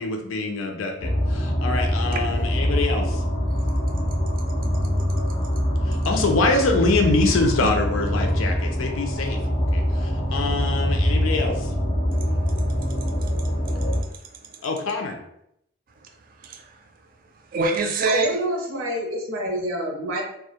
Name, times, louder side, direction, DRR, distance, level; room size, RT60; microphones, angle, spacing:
voice 1, 0.0-3.2 5.9-9.4 9.7-11.7 14.6-15.2, left 3 dB, 85° left, 3 dB, 0.5 m, -24 dB
sound 1, 1.0-14.0, equal, 30° left, 0.4 m, -24 dB
voice 2, 12.2-14.7 16.0-17.1 17.3-18.4, right 3 dB, 45° right, 4 dB, 0.3 m, -30 dB
voice 3, 18.0-20.2, equal, 90° right, 0 dB, 0.6 m, -27 dB
2.2 x 2.0 x 2.7 m, 0.75 s
head